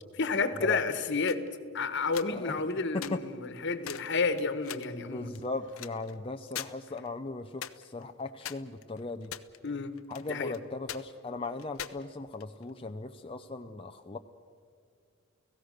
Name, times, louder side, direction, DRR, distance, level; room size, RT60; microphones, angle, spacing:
voice 1, 0.2-1.4 1.7-5.3 9.6-10.0 10.3-10.5, left 4 dB, 55° left, 11 dB, 1.4 m, -30 dB
sound 1, 1.3-1.5 2.0-2.7 3.0-3.1 3.5-3.6 3.8-4.1 4.4-4.9 5.3-6.1 6.5-6.7 7.0-7.1 7.6-8.0 8.4-9.7 10.0-10.6 10.9-11.0 11.6-12.7, left 10 dB, 75° left, 0.8 m, -41 dB
voice 2, 5.0-9.3 10.1-14.2, left 3 dB, 25° left, 5 dB, 0.6 m, -38 dB
30.0 x 17.0 x 6.6 m, 2.2 s
head